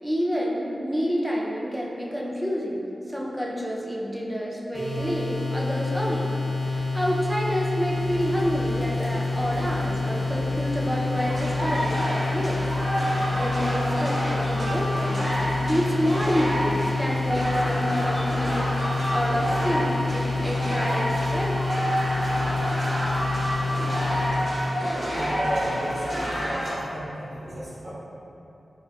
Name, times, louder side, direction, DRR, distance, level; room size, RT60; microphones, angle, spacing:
voice 1, 0.0-12.6 13.3-18.8 19.1-21.7, equal, 10° right, -3 dB, 0.4 m, -28 dB
sound 1, 4.7-24.4, left 3 dB, 50° left, 0.7 m, -28 dB
sound 2, 7.9-26.7, left 1 dB, 70° left, 0.3 m, -39 dB
sound 3, 11.2-26.7, equal, 85° right, 1.0 m, -29 dB
voice 2, 25.1-26.1 26.4-27.9, right 1 dB, 60° right, -9 dB, 0.6 m, -32 dB
3.5 x 2.4 x 2.2 m, 2.8 s
wide cardioid pair, 85°, 0 cm